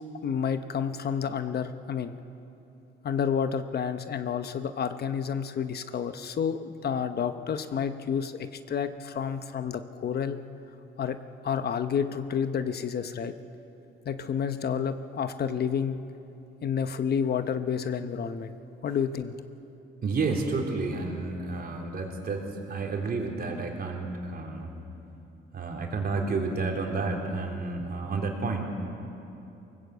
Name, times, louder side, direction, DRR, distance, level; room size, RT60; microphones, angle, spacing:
voice 1, 0.2-2.1 3.0-10.4 11.0-11.2 11.4-13.3 14.0-16.0 16.6-18.6 18.8-19.3, left 7 dB, 55° left, 10 dB, 1.0 m, -30 dB
voice 2, 20.0-24.7 25.5-28.6, right 3 dB, 50° right, 1 dB, 3.7 m, -30 dB
21.5 x 19.0 x 8.1 m, 2.9 s
cardioid pair, 90°, 20 cm